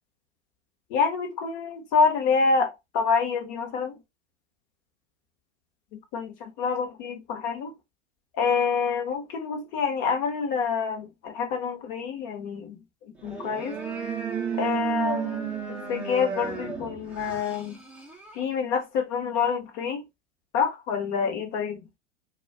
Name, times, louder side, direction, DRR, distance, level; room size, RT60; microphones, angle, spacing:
voice 1, 0.9-3.9 6.1-7.7 8.3-12.8 13.2-13.8 14.6-17.8 18.3-20.0 20.5-21.8, left 5 dB, 35° left, 0.9 m, -27 dB
sound 1, 13.2-18.4, right 7 dB, 5° right, 0.5 m, -33 dB
2.4 x 2.3 x 3.3 m
figure-of-eight pair, 100°, 39 cm